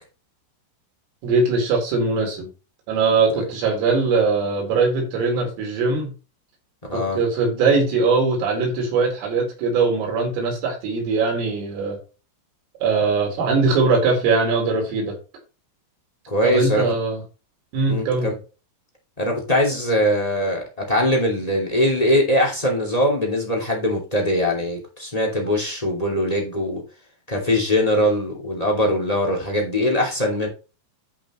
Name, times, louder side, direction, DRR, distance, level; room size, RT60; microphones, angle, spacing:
voice 1, 1.2-2.5 2.9-6.1 6.9-12.0 12.8-15.2 16.4-17.2 17.7-18.3, right 4 dB, 85° right, 0 dB, 7.0 m, -21 dB
voice 2, 16.3-16.8 17.9-18.3 19.2-26.8 27.3-30.5, left 1 dB, 20° left, 1 dB, 0.9 m, -21 dB
13.0 x 6.1 x 3.1 m, 0.32 s
omnidirectional pair, 5.8 m